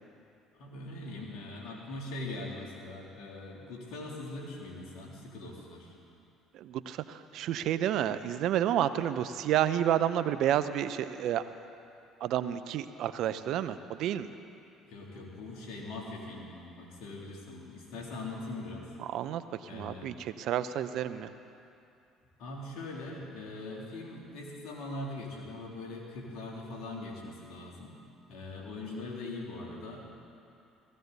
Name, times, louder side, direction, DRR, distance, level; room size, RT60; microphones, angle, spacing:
voice 1, 0.5-5.9 14.9-18.9 19.6-20.1 22.4-27.9 28.3-30.0, left 2 dB, 70° left, -2 dB, 3.1 m, -41 dB
voice 2, 6.5-11.5 12.2-14.3 19.0-19.4 19.7-21.3, right 11 dB, 65° right, 12 dB, 0.6 m, -30 dB
18.0 x 15.5 x 4.1 m, 2.6 s
hypercardioid pair, 65°, 0 cm